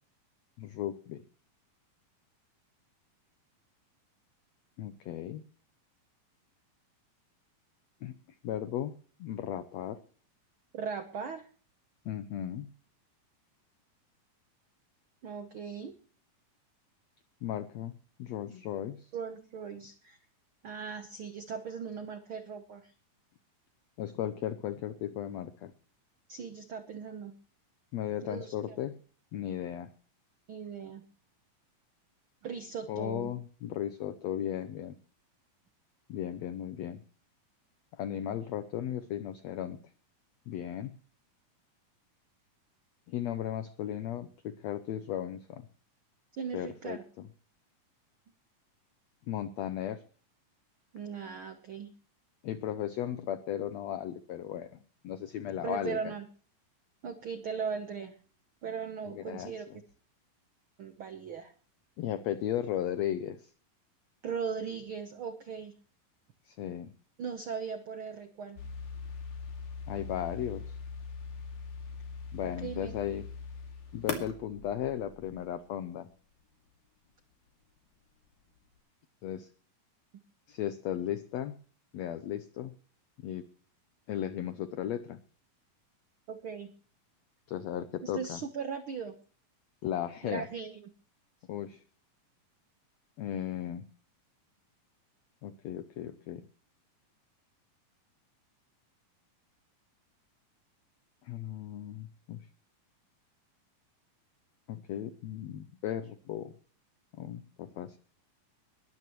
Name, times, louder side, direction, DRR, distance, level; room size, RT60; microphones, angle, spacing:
voice 1, 0.6-1.2 4.8-5.4 8.0-8.1 8.4-10.0 12.0-12.7 17.4-19.1 24.0-25.7 27.9-29.0 29.3-29.9 32.9-35.0 36.1-37.0 37.9-39.8 40.5-41.0 43.1-45.7 46.5-47.3 49.3-50.0 52.4-54.7 55.0-56.1 59.1-59.5 62.0-63.5 66.5-66.9 69.9-70.8 72.3-73.3 73.9-76.1 79.2-79.5 80.5-81.6 81.9-82.7 83.2-83.4 84.1-85.2 87.5-88.4 89.8-90.5 91.5-91.8 93.2-93.8 95.4-96.4 101.2-102.4 104.7-106.5 107.2-108.0, left 10 dB, 85° left, 12 dB, 1.5 m, -36 dB
voice 2, 10.7-11.5 15.2-15.9 19.1-20.2 20.6-22.9 26.3-27.3 28.2-28.8 30.5-31.0 32.4-33.3 46.4-47.0 50.9-51.9 55.6-56.2 57.0-58.1 58.6-59.7 60.8-61.5 64.2-65.7 67.2-68.6 72.4-72.9 86.3-86.7 88.0-89.2 90.2-90.9, right 6 dB, 85° right, 8 dB, 1.1 m, -38 dB
sound 1, 68.6-75.5, left 5 dB, 60° left, 3.9 m, -41 dB
20.5 x 13.5 x 3.1 m, 0.42 s
omnidirectional pair, 4.0 m